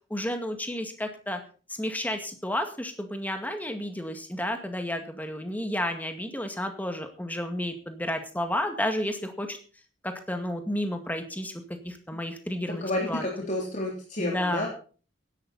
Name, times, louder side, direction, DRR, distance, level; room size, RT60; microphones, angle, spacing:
voice 1, 0.1-1.4 1.8-9.6 10.0-11.5 11.8-13.2 14.2-14.7, left 1 dB, 10° left, 6 dB, 2.0 m, -31 dB
voice 2, 12.7-14.7, left 1 dB, 40° left, -2 dB, 3.2 m, -30 dB
16.0 x 11.5 x 4.2 m, 0.39 s
head